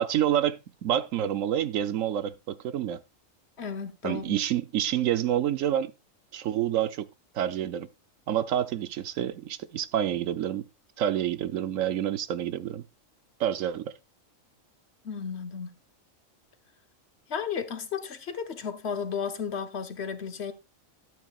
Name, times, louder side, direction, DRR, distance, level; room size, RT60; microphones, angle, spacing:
voice 1, 0.0-3.0 4.0-5.9 6.3-7.1 7.3-7.9 8.3-10.7 11.0-12.8 13.4-13.9, right 10 dB, 75° right, 1.1 m, -28 dB
voice 2, 3.6-4.4 15.0-15.7 17.3-20.5, left 6 dB, 55° left, 1.2 m, -33 dB
12.0 x 9.1 x 2.4 m
omnidirectional pair, 1.4 m